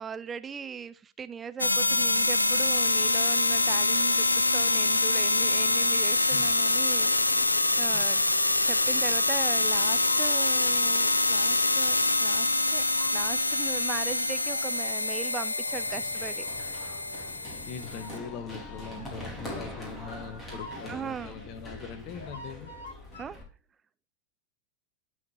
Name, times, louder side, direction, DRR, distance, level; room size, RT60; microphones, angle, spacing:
voice 1, 0.0-8.2 8.6-12.8 13.1-16.7 19.0-19.1 20.9-21.4 23.2-23.4, right 7 dB, 20° right, 14 dB, 0.3 m, -39 dB
sound 1, 1.6-18.2, left 2 dB, 80° left, 0.5 m, -25 dB
sound 2, 9.6-11.6 12.9-19.4 20.5-23.2, left 1 dB, 65° left, 2.0 m, -48 dB
Run, 15.7-23.4, left 1 dB, 15° left, 3.9 m, -43 dB
voice 2, 17.6-22.7, left 7 dB, 40° left, 11 dB, 1.1 m, -41 dB
12.0 x 5.0 x 2.7 m, 0.35 s
figure-of-eight pair, 90°, 0 cm